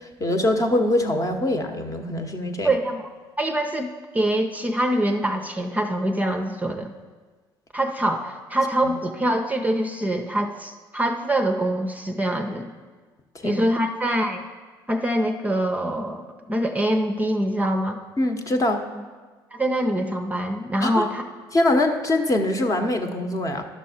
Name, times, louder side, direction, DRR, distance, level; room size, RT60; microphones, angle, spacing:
voice 1, 0.0-2.7 13.3-13.6 18.2-18.8 20.8-21.0 21.5-23.7, left 1 dB, 30° left, 5 dB, 1.0 m, -23 dB
voice 2, 2.6-3.1 3.4-6.9 7.7-12.7 13.4-14.4 14.9-18.0 19.5-21.2, right 1 dB, 10° right, 4 dB, 0.6 m, -24 dB
11.0 x 6.3 x 4.3 m, 1.4 s
hypercardioid pair, 55°, 12 cm